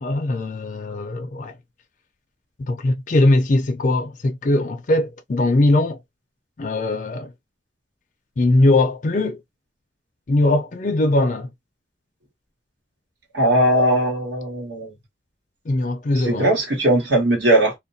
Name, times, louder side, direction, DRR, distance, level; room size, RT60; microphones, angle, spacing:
voice 1, 0.0-1.6 2.6-6.0 6.6-7.3 8.4-9.4 10.3-11.5 15.7-16.5, left 2 dB, 40° left, 0.4 m, -20 dB
voice 2, 13.3-14.9 16.3-17.7, right 1 dB, 70° right, 1.2 m, -19 dB
2.4 x 2.1 x 2.6 m
head